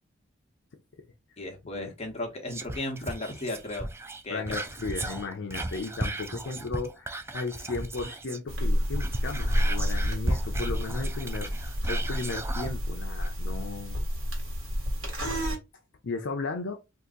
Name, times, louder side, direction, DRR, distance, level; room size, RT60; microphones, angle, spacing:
voice 1, 1.4-3.9 4.2-4.6 6.6-6.7, left 2 dB, 30° left, 0.9 m, -35 dB
Whispering, 2.5-8.5 8.8-12.8 13.2-13.3, right 2 dB, 15° right, 0.3 m, -35 dB
voice 2, 4.3-14.0 16.0-16.7, left 3 dB, 65° left, 0.6 m, -35 dB
sound 1, 8.5-15.6, equal, 75° right, 1.7 m, -29 dB
2.9 x 2.6 x 3.7 m
head